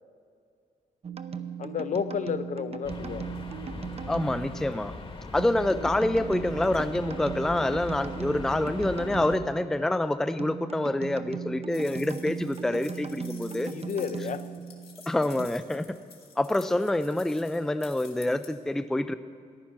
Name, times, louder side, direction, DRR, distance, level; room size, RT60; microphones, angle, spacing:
sound 1, 1.0-15.5, right 7 dB, 40° right, 0.7 m, -38 dB
voice 1, 1.6-3.3 13.7-14.4, left 7 dB, 55° left, 11 dB, 0.6 m, -32 dB
sound 2, 2.8-9.4, left 3 dB, 35° left, 1.2 m, -40 dB
voice 2, 4.1-4.9 5.3-13.7 15.1-15.9 16.4-19.1, left 1 dB, 5° left, 11 dB, 0.4 m, -27 dB
sound 3, 11.7-18.5, left 6 dB, 80° left, 2.1 m, -51 dB
14.5 x 10.5 x 6.0 m, 2.3 s
cardioid pair, 110°, 15 cm